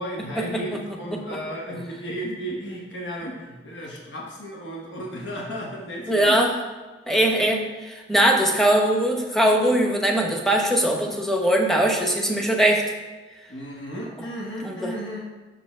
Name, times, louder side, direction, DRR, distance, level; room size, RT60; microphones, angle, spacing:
voice 1, 0.0-6.4 7.3-7.4 13.5-15.2, equal, 80° left, -2 dB, 1.2 m, -34 dB
voice 2, 6.1-6.6 7.1-12.8 14.6-14.9, right 1 dB, ahead, 1 dB, 0.8 m, -21 dB
5.9 x 5.3 x 4.4 m, 1.3 s
head